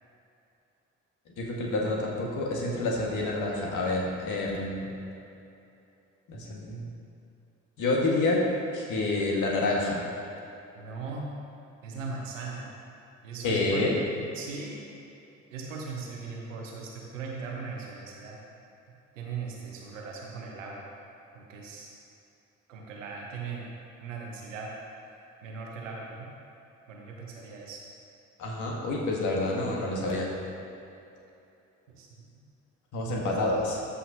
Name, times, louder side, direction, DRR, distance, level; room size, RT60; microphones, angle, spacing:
voice 1, 1.4-5.0 6.3-6.9 7.8-8.4 8.7-10.1 13.4-13.9 28.4-30.3 32.9-33.8, left 2 dB, 50° left, -2 dB, 1.7 m, -28 dB
voice 2, 10.8-11.3 11.8-12.7 13.2-14.0 14.3-14.8 15.5-18.4 19.1-20.9 21.3-22.0 22.7-23.7 24.0-24.7 25.4-26.3 26.9-27.8 31.9-32.3 33.1-33.2, right 4 dB, 80° right, -2 dB, 1.1 m, -39 dB
12.5 x 5.6 x 2.8 m, 2.7 s
figure-of-eight pair, 50°, 37 cm